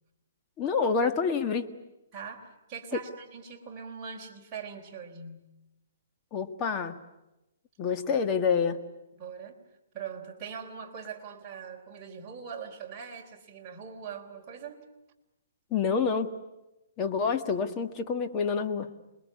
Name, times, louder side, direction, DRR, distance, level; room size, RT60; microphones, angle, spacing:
voice 1, 0.6-1.7 6.3-7.0 7.8-8.8 15.7-16.3 17.0-18.9, left 5 dB, 25° left, 6 dB, 1.7 m, -27 dB
voice 2, 2.1-5.5 9.2-9.6 9.9-14.8, right 6 dB, 20° right, -2 dB, 3.7 m, -42 dB
28.0 x 21.5 x 9.6 m, 0.97 s
hypercardioid pair, 155°, 0 cm